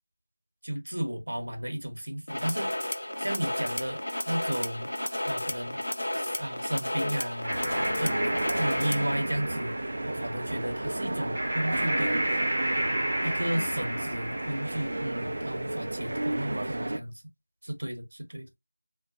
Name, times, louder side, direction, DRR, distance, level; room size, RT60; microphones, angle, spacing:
voice 1, 0.6-2.7 3.2-4.0 4.3-4.9 5.2-5.8 6.4-7.5 8.0-8.2 8.6-12.2 13.2-17.1 17.6-18.5, right 1 dB, 80° right, 1.0 m, -33 dB
sound 1, 2.3-9.1, left 1 dB, 90° left, 0.5 m, -32 dB
sound 2, 7.4-16.2, right 1 dB, 25° right, 0.8 m, -33 dB
voice 2, 7.5-8.7 13.5-13.9, left 2 dB, 40° left, 0.9 m, -39 dB
sound 3, 7.5-17.0, right 1 dB, 55° right, 0.4 m, -33 dB
2.2 x 2.1 x 2.7 m
figure-of-eight pair, 175°, 0 cm